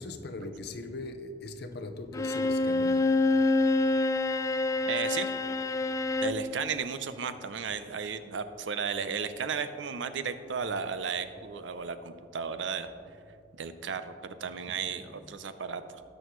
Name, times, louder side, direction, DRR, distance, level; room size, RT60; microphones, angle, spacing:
voice 1, 0.0-3.1 15.1-15.2, left 2 dB, 60° left, 0.7 m, -40 dB
Bowed string instrument, 2.1-6.5, left 2 dB, 20° left, 0.3 m, -27 dB
voice 2, 4.9-5.3 6.2-12.9 13.5-16.0, right 6 dB, 90° right, 0.6 m, -34 dB
18.5 x 6.3 x 3.1 m
head